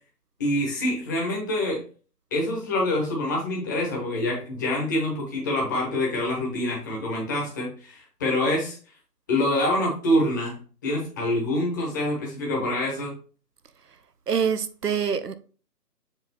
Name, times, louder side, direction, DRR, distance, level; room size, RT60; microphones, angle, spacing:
voice 1, 0.4-1.8 2.3-8.8 9.3-10.6 10.8-13.1, left 1 dB, 10° left, 1.0 m, -26 dB
voice 2, 14.3-15.3, right 7 dB, 75° right, 0.9 m, -25 dB
7.0 x 3.6 x 4.2 m
figure-of-eight pair, 150°, 48 cm